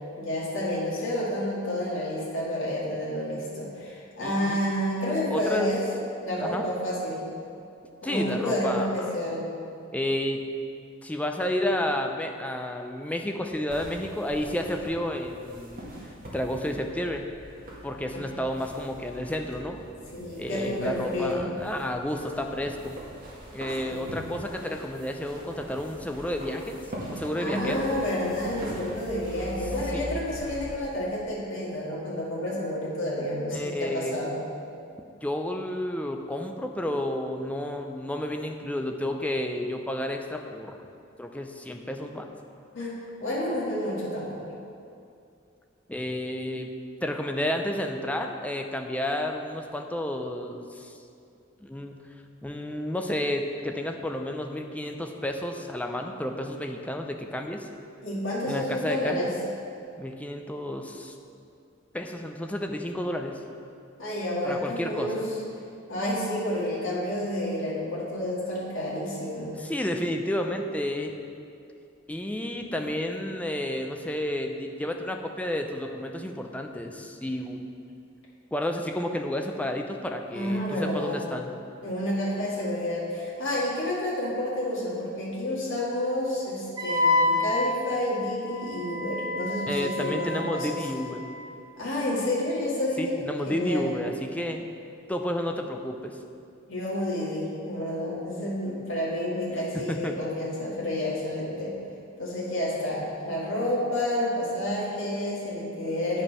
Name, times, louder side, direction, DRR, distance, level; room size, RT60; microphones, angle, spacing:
voice 1, 0.2-5.9 6.2-7.3 8.0-9.5 18.1-18.4 20.1-21.5 23.9-24.3 27.4-34.4 42.7-44.4 58.0-59.3 64.0-65.2 65.9-69.5 80.3-81.3 81.8-90.8 91.8-93.2 93.5-93.9 96.7-101.7 102.2-106.2, left 1 dB, 65° left, -7 dB, 2.0 m, -30 dB
voice 2, 4.2-4.6 5.3-5.7 6.4-6.7 8.0-9.1 9.9-10.4 11.0-15.9 16.3-17.3 17.8-19.8 20.4-23.0 23.5-26.8 27.1-27.9 29.9-30.2 33.5-34.2 35.2-40.8 41.2-42.3 45.9-46.7 47.0-50.9 51.6-52.0 52.4-57.7 58.5-59.3 60.0-61.1 61.9-63.4 64.4-65.3 69.6-71.2 72.1-77.7 78.5-81.6 89.7-91.2 93.0-94.7 95.1-96.2 99.5-100.2, left 1 dB, 5° left, 3 dB, 0.5 m, -31 dB
sound 1, 13.7-30.8, equal, 45° right, 1.9 m, -42 dB
Wind instrument woodwind instrument, 86.8-91.4, left 2 dB, 20° right, 0.9 m, -29 dB
8.8 x 5.4 x 5.6 m, 2.5 s
head